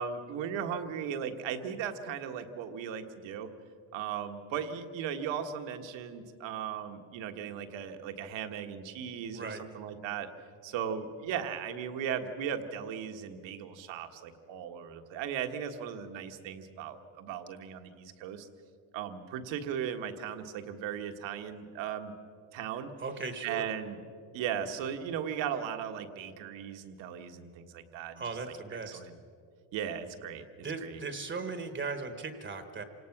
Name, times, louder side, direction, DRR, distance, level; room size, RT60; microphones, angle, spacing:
voice 1, 0.0-3.5 3.9-10.3 10.6-18.5 18.9-22.1 22.5-22.9 23.4-24.0 24.3-28.2 28.7-29.2 29.7-31.0, right 8 dB, 70° right, 6 dB, 1.7 m, -37 dB
voice 2, 23.0-23.6 28.2-29.0 30.6-32.8, right 4 dB, 25° right, 8 dB, 1.2 m, -37 dB
27.0 x 18.0 x 6.0 m, 2.3 s
cardioid pair, 160°, 47 cm